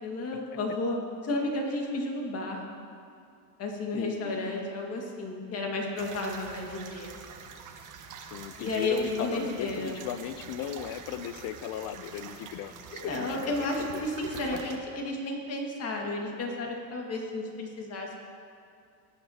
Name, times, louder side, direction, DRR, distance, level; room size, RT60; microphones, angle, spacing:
voice 1, 0.0-2.6 3.6-7.1 8.6-10.0 12.9-18.2, left 2 dB, 35° left, 0 dB, 2.0 m, -32 dB
voice 2, 3.9-4.5 8.3-14.1 14.5-14.6, left 10 dB, 50° left, 13 dB, 0.6 m, -37 dB
sound 1, 6.0-14.8, right 6 dB, 45° right, 1.3 m, -45 dB
18.5 x 9.0 x 2.9 m, 2.3 s
supercardioid pair, 125°, 44 cm